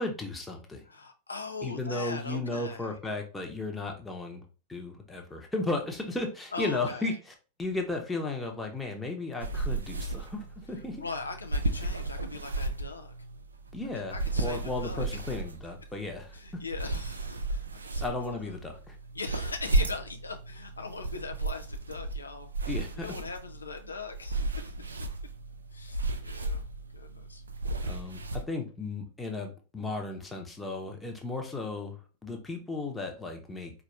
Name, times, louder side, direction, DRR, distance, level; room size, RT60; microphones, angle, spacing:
voice 1, 0.0-0.8 1.6-4.4 4.7-7.1 7.6-11.0 13.7-16.4 18.0-19.0 22.7-23.1 27.8-33.7, left 2 dB, 10° left, 0.9 m, -35 dB
voice 2, 0.8-2.9 6.5-7.2 10.7-13.1 13.9-15.3 16.3-17.7 17.9-18.6 19.1-22.5 22.9-24.8 25.7-26.6 26.9-27.4, left 4 dB, 80° left, 0.5 m, -41 dB
sound 1, 9.4-28.4, right 2 dB, 75° right, 0.4 m, -34 dB
4.5 x 2.5 x 3.2 m
figure-of-eight pair, 90°, 0 cm